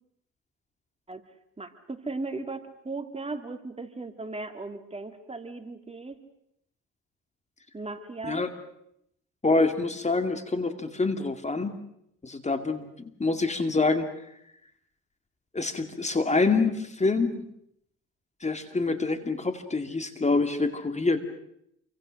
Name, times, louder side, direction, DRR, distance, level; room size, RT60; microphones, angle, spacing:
voice 1, 1.6-6.2 7.7-8.4, right 3 dB, 20° right, 6 dB, 2.6 m, -37 dB
voice 2, 9.4-11.8 12.2-14.1 15.5-17.4 18.4-21.2, left 3 dB, 20° left, 8 dB, 2.3 m, -26 dB
28.5 x 24.5 x 6.4 m, 0.74 s
cardioid pair, 90°, 30 cm